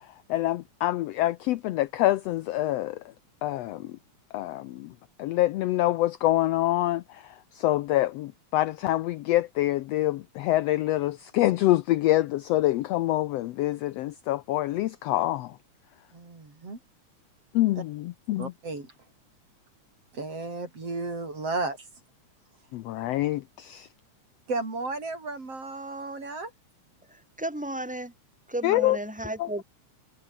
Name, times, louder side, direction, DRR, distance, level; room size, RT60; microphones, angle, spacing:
voice 1, 0.3-3.0 3.4-4.0 4.3-4.9 5.2-15.6 17.5-18.5 22.7-23.9 28.6-29.0 29.4-29.5, left 15 dB, 80° left, 1.5 m, -26 dB
voice 2, 16.1-16.8 18.4-18.9 20.1-21.8 24.5-26.5, right 3 dB, 50° right, 7.4 m, -33 dB
voice 3, 27.4-28.1 28.5-29.6, right 1 dB, ahead, 5.2 m, -33 dB
omnidirectional pair, 3.5 m